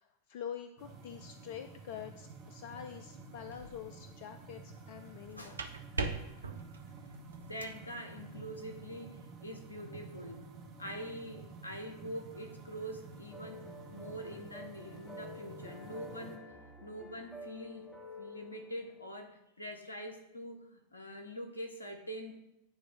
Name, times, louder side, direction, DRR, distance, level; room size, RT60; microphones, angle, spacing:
voice 1, 0.0-5.6, left 9 dB, 50° left, 8 dB, 0.3 m, -46 dB
sound 1, 0.8-16.4, right 4 dB, 40° right, 1.1 m, -51 dB
sound 2, 3.5-3.9 5.2-7.8, right 3 dB, 75° right, 0.5 m, -41 dB
voice 2, 7.4-10.4 10.8-17.9 18.2-22.3, equal, 80° left, 5 dB, 0.8 m, -44 dB
sound 3, 13.3-19.1, left 1 dB, 5° left, 0.9 m, -50 dB
9.5 x 3.3 x 3.8 m, 0.85 s
figure-of-eight pair, 90°, 0 cm